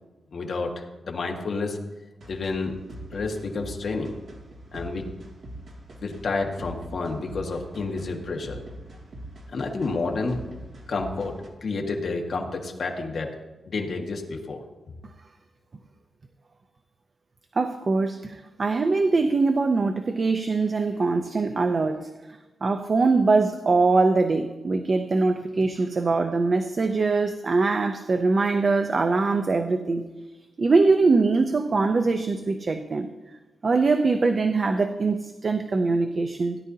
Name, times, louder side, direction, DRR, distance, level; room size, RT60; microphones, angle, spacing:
voice 1, 0.3-1.8 2.3-2.7 3.1-4.1 4.7-5.0 6.0-8.6 9.5-10.4 10.9-11.3 11.6-13.3 13.6-14.6, left 3 dB, 55° left, 1 dB, 1.7 m, -29 dB
sound 1, 2.2-11.5, right 1 dB, 55° right, 2.4 m, -43 dB
voice 2, 17.5-22.1 22.6-30.0 30.6-33.1 33.6-36.6, right 3 dB, 40° right, 7 dB, 0.6 m, -22 dB
17.0 x 11.0 x 2.8 m, 1.1 s
wide cardioid pair, 135°, 0 cm